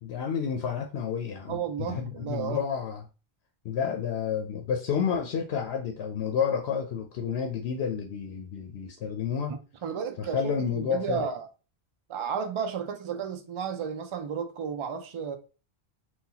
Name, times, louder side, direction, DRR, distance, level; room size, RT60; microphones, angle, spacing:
voice 1, 0.0-3.0 3.6-9.5 10.2-11.2, left 7 dB, 80° left, 0.8 m, -30 dB
voice 2, 1.5-2.6 9.5-11.5 12.1-15.4, right 7 dB, 50° right, 0.3 m, -33 dB
3.8 x 2.3 x 2.8 m
omnidirectional pair, 1.1 m